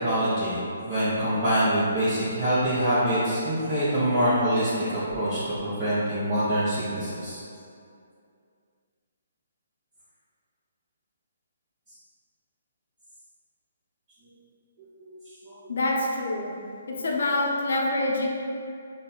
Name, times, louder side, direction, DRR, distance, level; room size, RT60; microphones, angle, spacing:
voice 1, 0.0-4.8 5.1-7.4 15.0-15.2 15.4-15.7, equal, 35° right, -14 dB, 1.3 m, -25 dB
voice 2, 15.7-16.5 16.9-18.3, left 2 dB, 65° left, -2 dB, 0.7 m, -26 dB
5.3 x 2.7 x 2.2 m, 2.4 s
figure-of-eight pair, 140°, 0 cm